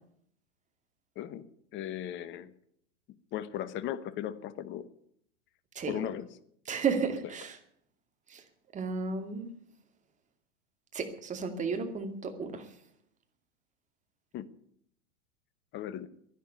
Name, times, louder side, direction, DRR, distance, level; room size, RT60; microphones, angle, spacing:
voice 1, 1.2-2.5 3.3-4.9 5.9-6.4 14.3-14.5 15.7-16.1, left 11 dB, 35° left, 1.1 m, -37 dB
voice 2, 6.7-7.5 8.3-8.4 8.7-9.5 10.9-12.6, right 5 dB, 20° right, 2.4 m, -33 dB
11.5 x 11.0 x 9.7 m
hypercardioid pair, 105°, 35 cm